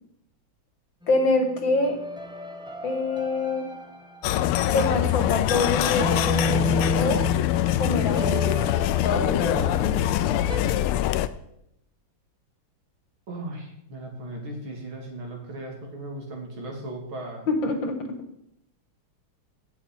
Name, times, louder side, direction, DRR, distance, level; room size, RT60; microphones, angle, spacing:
sound 1, 1.0-10.6, equal, 5° right, 0.7 m, -33 dB
voice 1, 1.1-2.0 2.8-3.7 4.7-6.6 6.9-7.3 7.8-8.7 9.0-10.0 17.5-18.0, left 3 dB, 60° left, 5 dB, 2.4 m, -25 dB
sound 2, 4.2-11.3, left 12 dB, 90° left, 1.5 m, -24 dB
voice 2, 13.3-17.5, right 1 dB, 70° right, 0 dB, 3.3 m, -37 dB
17.5 x 7.2 x 4.4 m, 0.77 s
omnidirectional pair, 2.3 m